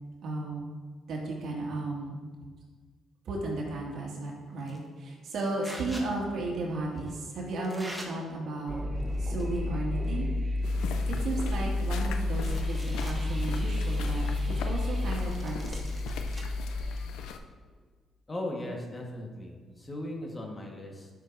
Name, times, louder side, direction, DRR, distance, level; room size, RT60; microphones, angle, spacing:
voice 1, 0.2-0.7 1.1-2.2 3.3-8.8 9.2-10.3 11.1-14.3 14.6-15.7, right 2 dB, 65° right, -2 dB, 2.2 m, -34 dB
sound 1, 4.6-4.9 5.6-6.1 7.0-7.1 7.6-8.1 9.0-9.6 10.0-10.1 10.6-10.7 11.0-12.0 12.4-13.2 13.7-13.8 15.2-16.4, equal, ahead, 1.4 m, -45 dB
sound 2, 8.7-17.1, left 2 dB, 20° right, 1.1 m, -31 dB
sound 3, 10.6-17.4, left 4 dB, 90° left, 0.5 m, -40 dB
voice 2, 18.3-21.1, left 1 dB, 25° left, 0 dB, 1.5 m, -38 dB
12.0 x 6.3 x 2.7 m, 1.5 s
cardioid pair, 90°, 0 cm